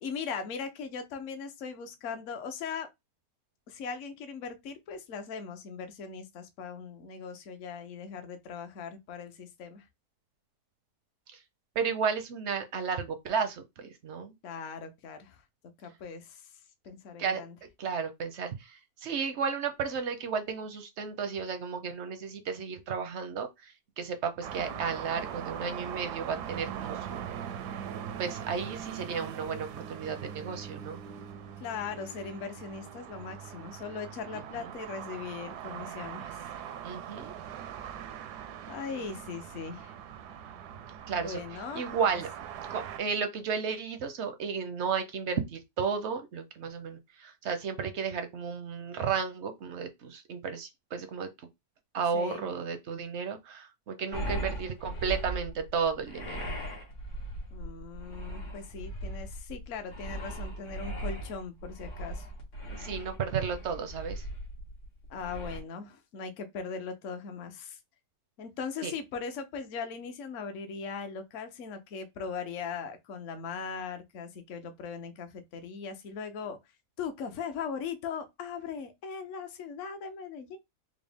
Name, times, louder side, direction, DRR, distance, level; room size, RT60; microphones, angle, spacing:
voice 1, 0.0-2.9 3.7-9.9 14.4-15.4 15.8-16.5 16.8-17.6 31.6-36.5 38.7-39.9 41.1-41.8 52.1-52.5 57.5-62.3 65.1-67.8 68.4-76.6 77.0-80.6, left 6 dB, 60° left, 1.0 m, -39 dB
voice 2, 11.8-14.3 17.2-17.4 17.8-27.2 28.2-31.0 36.8-37.3 41.1-41.4 41.7-42.3 42.7-51.3 51.9-56.5 62.7-64.2 68.8-68.9, right 6 dB, 65° right, 0.7 m, -33 dB
sound 1, 24.4-43.0, right 9 dB, 85° right, 1.2 m, -41 dB
sound 2, 54.1-65.6, right 1 dB, 85° left, 2.2 m, -38 dB
4.9 x 2.0 x 3.4 m
omnidirectional pair, 1.7 m